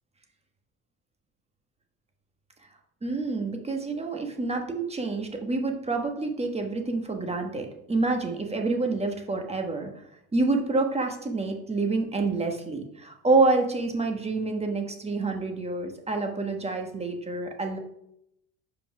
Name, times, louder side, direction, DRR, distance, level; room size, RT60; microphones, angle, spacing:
voice 1, 3.0-9.9 10.3-17.8, right 3 dB, 15° right, 3 dB, 1.3 m, -27 dB
5.6 x 5.1 x 5.9 m, 0.77 s
cardioid pair, 115°, 37 cm